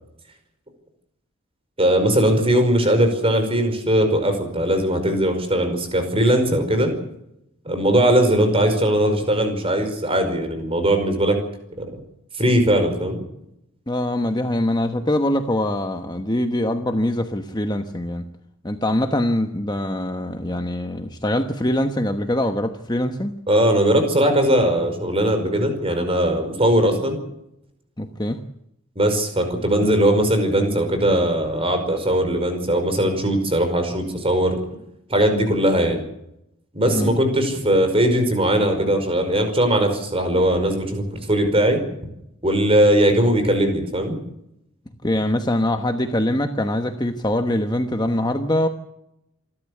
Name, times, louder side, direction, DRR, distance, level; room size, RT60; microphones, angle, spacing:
voice 1, 1.8-6.9 7.7-11.4 11.8-12.0 12.4-13.2 23.5-27.2 29.0-34.6 35.1-36.0 36.7-41.8 42.4-44.2, right 1 dB, 25° right, 6 dB, 5.3 m, -19 dB
voice 2, 13.9-18.2 18.6-23.3 28.0-28.4 36.8-37.1 45.0-48.7, left 1 dB, 20° left, 6 dB, 1.1 m, -23 dB
27.5 x 12.5 x 8.4 m, 0.81 s
head